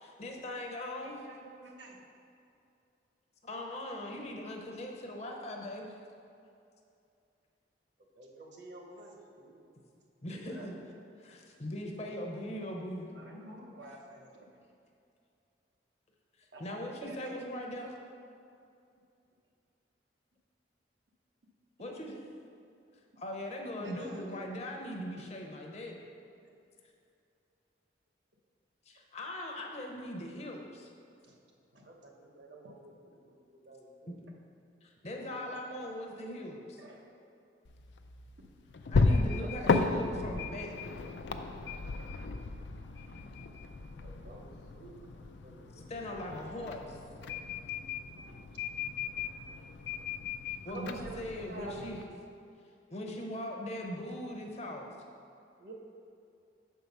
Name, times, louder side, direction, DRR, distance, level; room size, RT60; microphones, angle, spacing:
voice 1, 0.2-1.2 3.4-5.9 10.2-10.8 11.3-13.1 16.6-17.9 21.8-22.1 23.2-26.0 28.9-30.9 34.1-34.2 34.8-36.8 38.9-40.8 45.7-47.0 50.6-52.0 52.9-54.9, left 1 dB, 35° left, 1 dB, 0.7 m, -40 dB
voice 2, 1.0-2.0 13.1-14.6 16.5-16.6 17.0-17.4 23.8-24.5 31.2-31.4 31.7-31.9 36.8-37.1 39.1-39.5 43.1-43.2 43.9-44.3 45.0-45.1 48.1-48.6 49.0-49.3 50.0-50.1 52.9-53.0, equal, 85° right, -1 dB, 1.0 m, -51 dB
voice 3, 8.2-9.6 10.3-10.7 31.8-32.9 33.2-34.2 35.2-35.9 44.0-45.0 45.3-46.1 50.7-52.0 55.6-55.7, right 2 dB, 55° right, 1 dB, 1.0 m, -49 dB
sound 1, 37.6-52.0, left 3 dB, 80° left, 0.4 m, -35 dB
6.5 x 4.7 x 5.4 m, 2.6 s
head